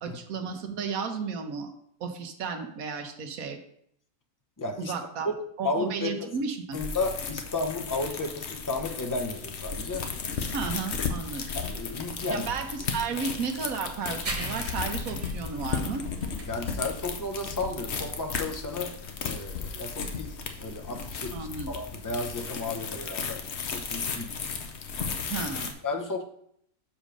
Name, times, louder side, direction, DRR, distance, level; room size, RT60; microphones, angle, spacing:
voice 1, 0.0-1.7 2.0-3.6 4.8-5.3 5.6-6.8 10.5-11.4 12.3-16.0 21.3-21.7 25.3-25.7, right 5 dB, 75° right, 5 dB, 1.4 m, -33 dB
voice 2, 4.6-4.9 5.2-5.3 5.6-6.3 6.7-10.1 11.5-12.5 16.5-23.4 23.7-24.3 25.8-26.2, left 3 dB, 25° left, 3 dB, 0.4 m, -33 dB
sound 1, 6.7-25.7, left 5 dB, 55° left, 1.0 m, -35 dB
sound 2, 14.2-21.4, right 2 dB, 30° right, 0.9 m, -41 dB
6.4 x 5.1 x 5.1 m, 0.70 s
omnidirectional pair, 1.5 m